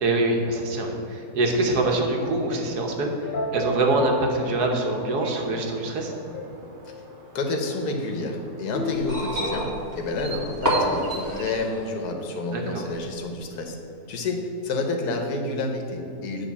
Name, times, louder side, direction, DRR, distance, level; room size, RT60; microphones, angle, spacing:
voice 1, 0.0-6.1 12.5-12.9, right 2 dB, 85° right, 2 dB, 1.6 m, -24 dB
sound 1, 3.2-5.4 5.9-7.0 8.7-10.1, left 1 dB, 50° left, 0.6 m, -34 dB
sound 2, 5.2-11.6, right 5 dB, 55° right, 0.6 m, -43 dB
voice 2, 7.3-9.7 9.9-13.8 14.1-16.5, left 2 dB, 80° left, 3 dB, 1.5 m, -29 dB
sound 3, 8.9-11.9 13.0-13.1, equal, 15° right, 1.5 m, -28 dB
9.3 x 3.7 x 7.0 m, 2.8 s
omnidirectional pair, 1.7 m